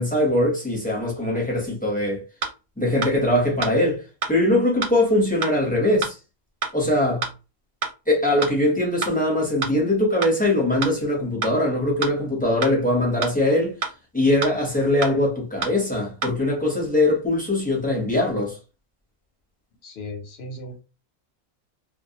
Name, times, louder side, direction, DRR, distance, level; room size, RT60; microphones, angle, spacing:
voice 1, 0.0-2.2 2.8-4.0 4.3-6.1 6.7-7.3 8.1-13.7 14.1-18.6, left 1 dB, 10° left, 0.6 m, -21 dB
sound 1, 2.4-2.5 3.0-3.1 3.6-3.7 4.2-4.3 4.8-4.9 5.4-5.5 6.0-6.1 6.6-6.7 7.2-7.3 7.8-7.9 8.4-8.5 9.0-9.1 9.6-9.7 10.2-10.3 10.8-10.9 11.4-11.5 12.0-12.1 12.6-12.7 13.2-13.3 13.8-13.9 14.4-14.5 15.0-15.1 15.6-15.7 16.2-16.3, right 4 dB, 65° right, 0.8 m, -26 dB
voice 2, 19.8-20.8, left 1 dB, 60° left, 0.7 m, -36 dB
2.2 x 2.1 x 2.7 m
omnidirectional pair, 1.4 m